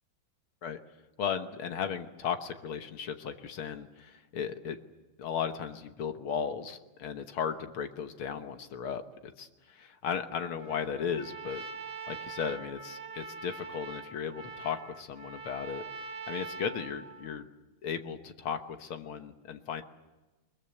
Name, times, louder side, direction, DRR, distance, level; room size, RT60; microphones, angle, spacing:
voice 1, 1.2-4.8 5.2-11.6 12.1-15.9 16.3-17.5 17.8-19.8, left 7 dB, 75° left, 7 dB, 2.0 m, -36 dB
Trumpet, 10.6-17.4, right 4 dB, 30° right, 2.3 m, -43 dB
22.0 x 21.5 x 8.3 m, 1.1 s
omnidirectional pair, 2.4 m